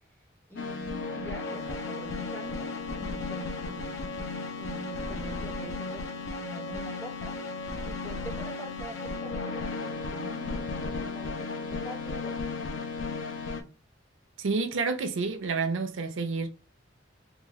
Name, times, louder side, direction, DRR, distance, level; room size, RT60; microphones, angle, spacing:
voice 1, 0.5-2.7 3.0-4.0 4.6-12.6, right 2 dB, 10° left, 1.0 m, -44 dB
sound 1, 0.6-13.6, left 3 dB, 90° left, 0.6 m, -35 dB
voice 2, 14.4-16.5, right 4 dB, 85° right, 0.6 m, -29 dB
3.8 x 2.4 x 3.0 m
head